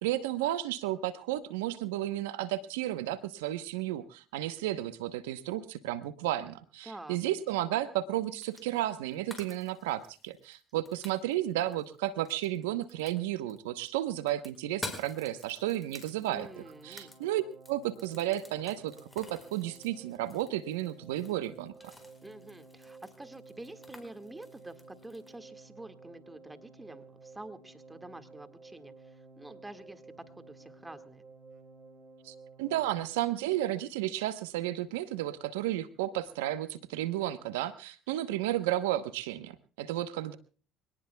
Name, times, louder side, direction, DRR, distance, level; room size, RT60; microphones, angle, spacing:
voice 1, 0.0-16.5 16.8-17.4 17.7-21.9 32.2-40.3, right 14 dB, 90° right, 12 dB, 0.9 m, -33 dB
voice 2, 6.8-7.2 16.3-17.1 22.2-31.2, right 2 dB, 15° right, 9 dB, 1.8 m, -48 dB
sound 1, 8.4-8.8 9.1-13.6 13.9-25.3, left 2 dB, 10° left, 4.4 m, -49 dB
sound 2, 16.2-33.0, right 4 dB, 40° right, 4.0 m, -54 dB
25.0 x 18.5 x 2.3 m, 0.38 s
supercardioid pair, 75°, 0 cm